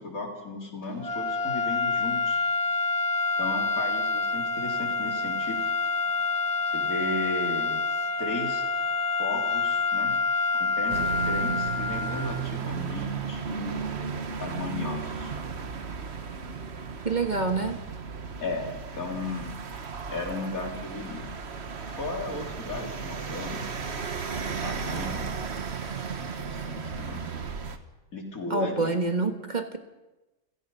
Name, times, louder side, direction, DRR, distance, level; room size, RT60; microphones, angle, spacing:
voice 1, 0.0-2.4 3.4-5.6 6.7-7.7 8.2-8.7 9.2-10.2 10.5-13.8 14.4-15.4 18.4-19.6 20.1-21.3 21.9-23.8 24.6-25.4 26.1-27.3 28.1-28.9, left 2 dB, 80° left, 1 dB, 4.1 m, -35 dB
sound 1, 1.0-12.5, left 4 dB, 30° left, 1.2 m, -27 dB
sound 2, 10.9-27.8, right 5 dB, 50° right, 1.5 m, -35 dB
voice 2, 17.0-17.8 28.5-29.8, right 3 dB, 35° right, 6 dB, 1.4 m, -27 dB
29.5 x 16.0 x 5.5 m, 1.1 s
omnidirectional pair, 1.5 m